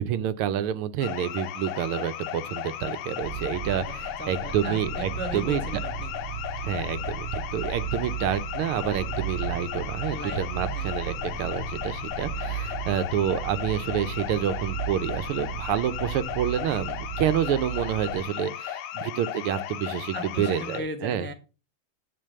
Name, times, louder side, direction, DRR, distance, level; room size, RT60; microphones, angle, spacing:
voice 1, 0.0-5.6 6.6-21.3, right 9 dB, 85° right, 1.6 m, -28 dB
sound 1, 1.0-20.8, left 11 dB, 75° left, 1.5 m, -35 dB
sound 2, 3.2-18.2, right 7 dB, 65° right, 1.5 m, -35 dB
voice 2, 3.8-6.1 10.1-10.9 20.1-21.3, right 1 dB, 15° left, 0.3 m, -38 dB
10.5 x 3.9 x 6.5 m
omnidirectional pair, 2.4 m